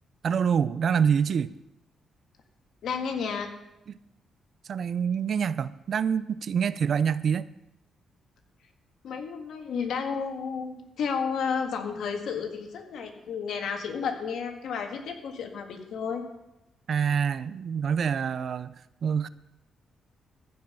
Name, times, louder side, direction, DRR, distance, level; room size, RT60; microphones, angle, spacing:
voice 1, 0.2-1.5 4.7-7.5 16.9-18.7 19.0-19.3, right 7 dB, 60° right, 17 dB, 0.4 m, -26 dB
voice 2, 2.8-3.5 9.0-16.2, left 6 dB, 75° left, 4 dB, 1.7 m, -32 dB
14.5 x 5.4 x 6.7 m, 0.90 s
cardioid pair, 80°, 0 cm